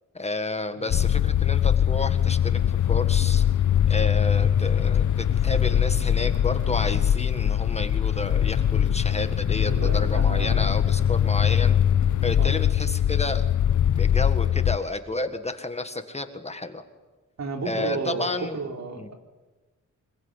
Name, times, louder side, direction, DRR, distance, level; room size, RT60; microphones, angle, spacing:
voice 1, 0.1-3.5 3.9-11.8 12.2-13.4 13.9-16.8 17.6-18.6 19.0-19.1, left 2 dB, 20° left, 8 dB, 1.6 m, -31 dB
sound 1, 0.9-14.8, left 9 dB, 75° left, 0.9 m, -22 dB
voice 2, 9.7-10.8 12.4-12.6 17.4-19.1, right 3 dB, 60° right, 4 dB, 4.0 m, -33 dB
25.5 x 22.0 x 9.8 m, 1.2 s
wide cardioid pair, 150°, 30 cm